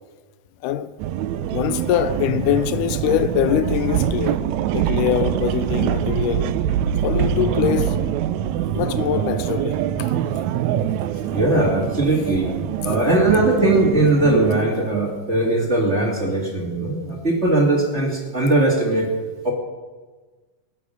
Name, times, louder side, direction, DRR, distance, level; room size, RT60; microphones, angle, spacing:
sound 1, 1.0-14.6, right 11 dB, 80° right, 1.8 m, -24 dB
voice 1, 1.5-4.4 4.7-6.5 7.0-8.0 8.7-10.1 11.5-11.6, left 11 dB, 85° left, 2.1 m, -23 dB
voice 2, 11.3-12.5 12.8-19.1 19.4-19.5, right 2 dB, 25° right, 2.4 m, -19 dB
24.0 x 8.3 x 6.4 m
omnidirectional pair, 3.6 m